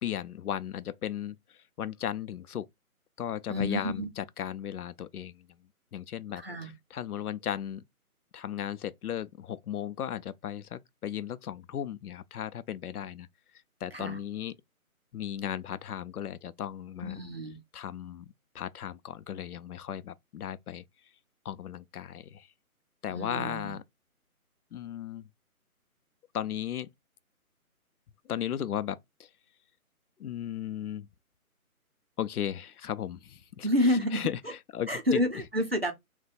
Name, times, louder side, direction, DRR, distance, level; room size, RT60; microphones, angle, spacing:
voice 1, 0.0-1.4 1.8-2.7 3.2-5.5 5.9-7.8 8.3-13.3 13.8-14.5 15.1-17.2 17.7-18.3 18.5-20.8 21.4-22.5 23.0-23.8 24.7-25.3 26.3-26.9 28.3-29.3 30.2-31.1 32.2-34.4 34.7-35.2, left 10 dB, 85° left, 0.5 m, -36 dB
voice 2, 3.5-4.1 6.4-6.7 13.9-14.2 17.0-17.6 23.1-23.8 33.6-34.5 34.9-35.9, left 1 dB, 45° right, 0.5 m, -29 dB
2.6 x 2.2 x 4.0 m
hypercardioid pair, 180°, 44 cm